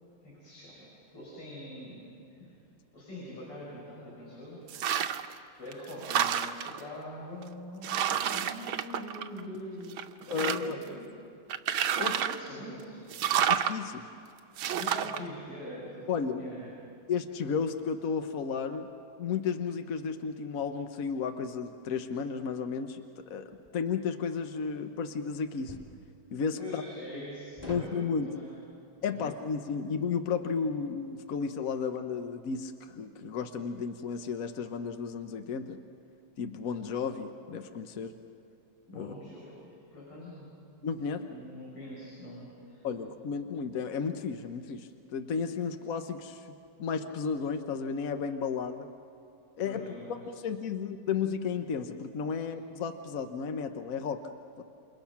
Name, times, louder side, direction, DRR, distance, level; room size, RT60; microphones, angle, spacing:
voice 1, 0.2-2.5 2.9-4.6 5.5-10.0 10.3-11.0 11.9-13.0 14.8-16.7 26.6-28.5 29.0-29.2 38.9-40.5 41.3-42.9 49.6-50.2, equal, 85° left, -6 dB, 6.2 m, -43 dB
sound 1, 4.7-5.3 5.7-6.8 7.4-7.5 7.8-9.6 9.9-10.8 11.5-12.5 13.1-13.7 14.6-15.2, right 9 dB, 75° right, 1.6 m, -29 dB
voice 2, 10.3-10.8 12.0-12.1 13.5-14.0 16.1-16.4 17.1-18.9 19.2-25.8 26.3-26.8 27.7-28.3 29.0-35.8 36.4-38.1 38.9-39.1 40.8-41.2 42.8-46.5 46.8-48.9 49.6-54.2 54.6-54.7, left 6 dB, 60° left, 7 dB, 0.9 m, -33 dB
sound 2, 23.5-23.8 25.7-26.0 27.6-28.0, equal, 20° left, 2.2 m, -44 dB
29.0 x 27.0 x 5.9 m, 2.5 s
omnidirectional pair, 2.4 m